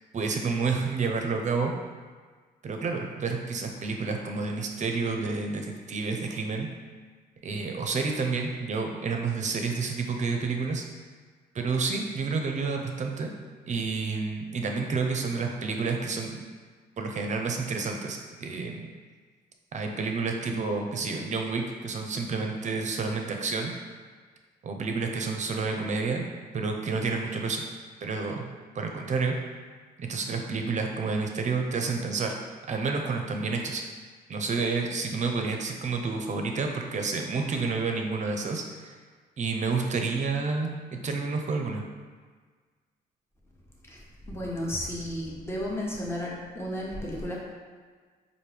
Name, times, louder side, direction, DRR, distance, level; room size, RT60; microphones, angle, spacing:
voice 1, 0.1-1.7 2.6-6.7 7.4-10.8 11.5-13.3 13.7-16.4 17.0-18.9 19.7-23.7 24.6-26.3 26.5-27.6 28.0-28.5 28.7-29.4 30.0-32.3 32.7-33.8 34.3-39.0 39.4-40.7 41.0-41.8, right 4 dB, 45° right, 3 dB, 0.6 m, -29 dB
voice 2, 44.3-47.3, left 1 dB, 15° left, -4 dB, 1.0 m, -33 dB
4.4 x 2.6 x 3.3 m, 1.5 s
cardioid pair, 80°, 17 cm